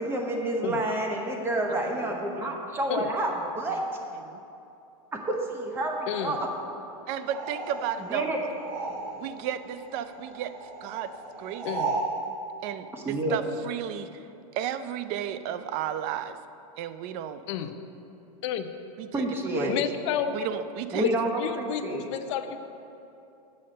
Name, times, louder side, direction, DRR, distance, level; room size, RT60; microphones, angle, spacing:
voice 1, 0.0-3.8 5.1-6.4 8.1-8.4 12.9-13.4 19.1-19.9 20.9-22.0, right 1 dB, 10° right, 1 dB, 1.0 m, -29 dB
voice 2, 1.7-2.5 3.7-3.8 4.2-4.4 7.1-8.3 9.2-11.1 11.4-11.7 12.6-14.3 14.5-16.4 16.8-17.4 19.0-19.3 19.5-19.8 20.3-21.3, right 10 dB, 35° right, 12 dB, 0.4 m, -34 dB
voice 3, 6.1-6.4 11.6-11.9 17.5-17.7 18.4-18.7 19.7-20.5 21.0-21.1 21.4-22.6, left 9 dB, 55° left, 7 dB, 0.7 m, -30 dB
sound 1, 7.2-9.4 9.7-12.2, right 4 dB, 65° right, 1.7 m, -35 dB
8.4 x 5.6 x 7.6 m, 2.8 s
supercardioid pair, 150°, 19 cm